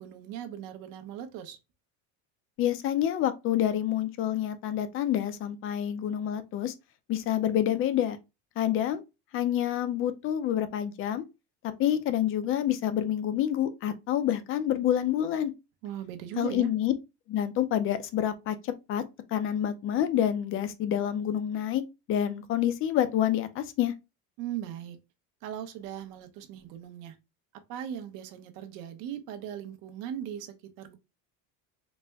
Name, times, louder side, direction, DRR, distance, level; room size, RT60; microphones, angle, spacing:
voice 1, 0.0-1.6 15.8-16.7 24.4-25.0 25.4-27.1 27.7-30.9, right 10 dB, 60° right, 0.9 m, -39 dB
voice 2, 2.6-6.7 7.1-8.2 8.6-9.0 9.3-11.2 11.8-15.5 16.4-16.9 17.3-19.0 19.3-21.8 22.1-23.9, left 11 dB, 35° left, 0.5 m, -27 dB
4.2 x 2.1 x 3.4 m
cardioid pair, 160°, 36 cm